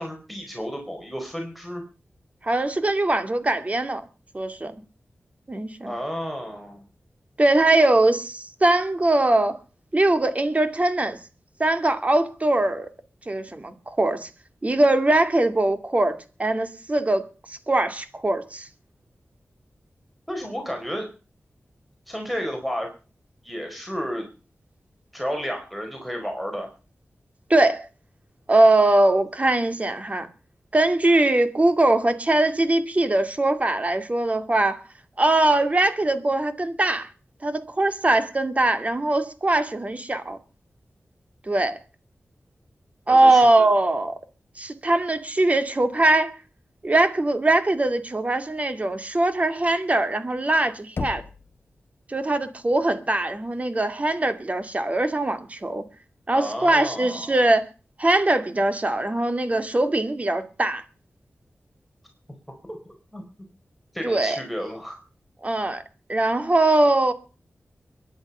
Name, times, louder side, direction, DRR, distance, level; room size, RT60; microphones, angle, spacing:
voice 1, 0.0-1.8 5.8-6.8 20.3-21.1 22.1-22.9 23.4-24.2 25.1-26.7 43.1-43.7 56.3-57.3 62.7-62.8 63.1-63.2 63.9-65.0, equal, ahead, 4.5 m, -32 dB
voice 2, 2.4-4.0 4.3-4.7 5.5-5.9 7.4-9.6 9.9-11.2 11.6-12.9 13.3-14.3 14.6-18.7 27.5-27.9 28.5-30.3 30.7-34.8 35.2-37.1 37.4-40.4 41.5-41.8 43.1-44.2 44.6-46.3 46.8-51.2 52.1-55.8 56.3-57.7 58.0-60.8 64.0-64.4 65.4-65.8 66.1-67.1, right 2 dB, 30° right, 2.4 m, -21 dB
Knock, 51.0-51.9, left 4 dB, 60° left, 0.9 m, -34 dB
22.5 x 11.0 x 5.6 m
wide cardioid pair, 85°, 4 cm